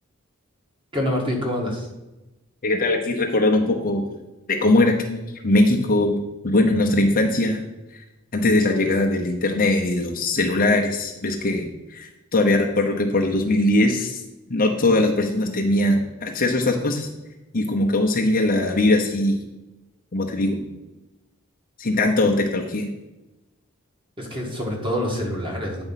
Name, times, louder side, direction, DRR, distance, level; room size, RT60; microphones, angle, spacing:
voice 1, 0.9-1.9 24.2-25.8, equal, 25° right, -1 dB, 1.8 m, -26 dB
voice 2, 2.6-4.1 4.5-7.6 8.3-14.2 14.5-17.1 17.5-19.4 20.1-20.6 21.8-22.9, left 2 dB, 40° left, 1 dB, 0.8 m, -21 dB
9.1 x 4.3 x 5.8 m, 1.0 s
head